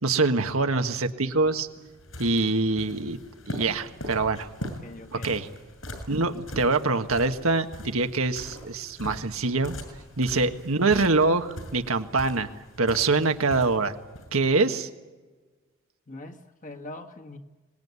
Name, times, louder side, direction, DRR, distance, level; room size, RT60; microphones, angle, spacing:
voice 1, 0.0-1.7 2.2-3.2 3.5-4.5 5.2-5.5 6.1-9.7 10.2-12.5 12.8-13.9 14.3-14.9, right 3 dB, 80° right, 7 dB, 1.6 m, -24 dB
sound 1, 1.4-14.3, equal, 70° left, 6.6 m, -42 dB
voice 2, 4.6-5.5 16.1-17.4, left 2 dB, 35° left, 5 dB, 1.7 m, -43 dB
25.0 x 20.0 x 9.6 m, 1.3 s
head